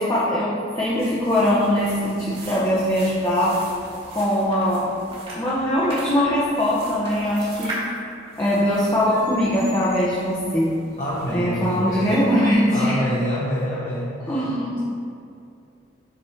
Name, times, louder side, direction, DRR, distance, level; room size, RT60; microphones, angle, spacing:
voice 1, 0.0-3.6 4.1-4.9 5.3-7.8 8.4-10.7 11.3-13.0 14.3-14.8, equal, 20° left, -7 dB, 0.8 m, -21 dB
sound 1, 0.8-12.5, right 1 dB, 30° right, 1.6 m, -40 dB
voice 2, 11.0-12.2 12.7-14.3, equal, 40° left, -8 dB, 1.0 m, -26 dB
7.4 x 4.2 x 4.4 m, 2.6 s
head